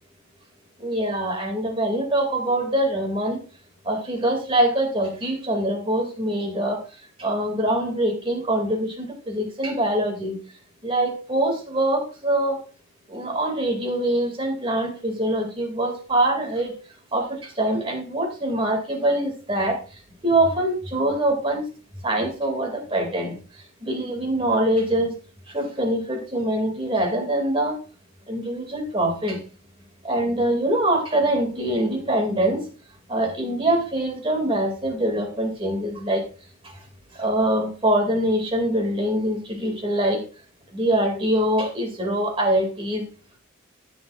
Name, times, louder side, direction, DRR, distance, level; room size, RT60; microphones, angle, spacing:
voice 1, 0.8-3.4 3.8-6.8 7.2-10.4 10.8-12.6 13.1-16.7 17.1-19.8 20.2-21.7 22.0-23.4 23.8-25.2 25.5-27.8 28.3-29.4 30.0-32.6 33.1-36.2 37.1-40.2 40.7-43.0, right 1 dB, 25° right, 2 dB, 2.2 m, -24 dB
14.5 x 6.9 x 2.4 m, 0.37 s
head